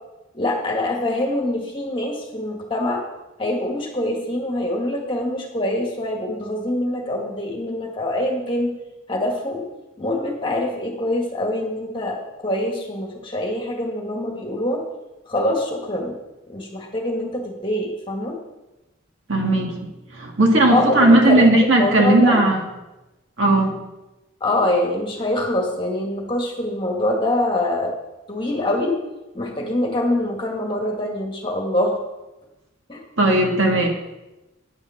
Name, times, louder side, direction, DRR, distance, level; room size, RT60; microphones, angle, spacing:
voice 1, 0.3-3.0 3.4-8.7 9.1-9.7 10.0-14.8 15.3-16.1 16.5-18.4 20.7-22.4 24.4-27.9 28.3-29.0 29.3-32.0 32.9-33.0, left 1 dB, 25° left, 1 dB, 1.8 m, -24 dB
voice 2, 19.3-19.8 20.1-22.6 23.4-23.8 33.2-33.9, right 2 dB, 65° right, 0 dB, 2.0 m, -16 dB
9.7 x 7.1 x 7.1 m, 1.0 s
head